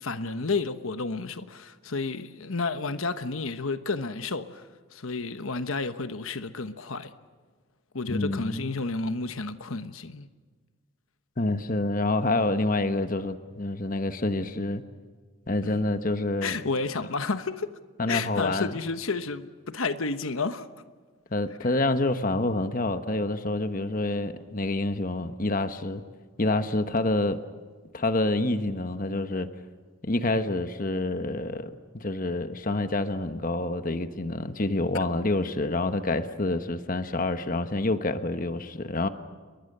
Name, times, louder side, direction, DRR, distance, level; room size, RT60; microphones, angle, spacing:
voice 1, 0.0-7.1 7.9-10.3 15.7-15.8 16.4-17.8 18.1-20.7, left 3 dB, 75° left, 1.1 m, -31 dB
voice 2, 8.1-8.7 11.4-14.8 15.5-16.5 18.0-18.8 21.3-26.0 26.4-27.4 27.9-29.5 30.0-39.1, left 2 dB, 40° left, 1.2 m, -27 dB
29.0 x 22.5 x 6.8 m
head